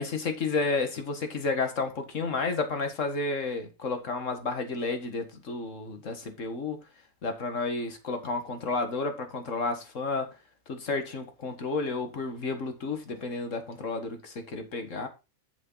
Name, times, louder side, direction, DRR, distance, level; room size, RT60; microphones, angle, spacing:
voice 1, 0.0-6.8 7.2-10.3 10.7-15.1, left 3 dB, 55° left, 1.9 m, -31 dB
8.6 x 7.3 x 4.0 m
omnidirectional pair, 1.6 m